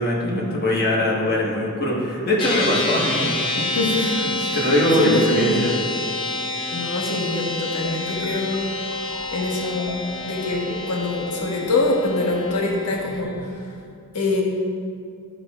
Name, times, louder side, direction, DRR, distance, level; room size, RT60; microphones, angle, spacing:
voice 1, 0.0-4.3 4.5-5.8, left 1 dB, 45° left, -4 dB, 1.5 m, -22 dB
sound 1, 2.4-13.2, left 2 dB, 25° left, 0.7 m, -28 dB
voice 2, 3.7-4.2 4.4-4.6 5.0-5.6 6.7-8.7 9.3-13.6 14.1-14.4, left 2 dB, 90° left, -2 dB, 1.3 m, -24 dB
sound 2, 7.6-13.5, right 1 dB, 30° right, 1.1 m, -40 dB
11.5 x 6.0 x 2.5 m, 2.3 s
head